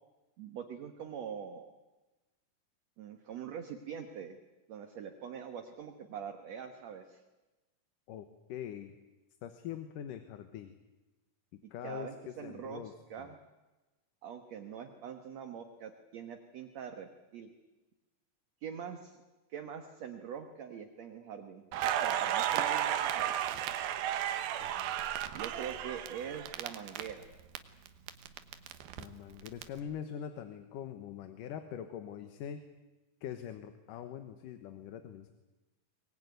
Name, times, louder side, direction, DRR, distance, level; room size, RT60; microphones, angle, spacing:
voice 1, 0.4-1.7 3.0-4.4 4.7-7.2 11.6-13.4 14.2-17.5 18.6-19.2 19.5-21.7 22.0-23.3 25.3-27.2, right 7 dB, 60° right, 5 dB, 2.2 m, -44 dB
voice 2, 8.1-8.9 9.4-10.8 11.5-12.1 12.4-12.9 13.2-13.3 24.6-25.0 29.0-32.6 33.2-35.3, left 9 dB, 70° left, 8 dB, 2.7 m, -43 dB
Crackle, 21.7-27.6 27.9-29.6, right 11 dB, 85° right, 2.9 m, -33 dB
24.0 x 19.5 x 9.4 m, 1.1 s
omnidirectional pair, 4.0 m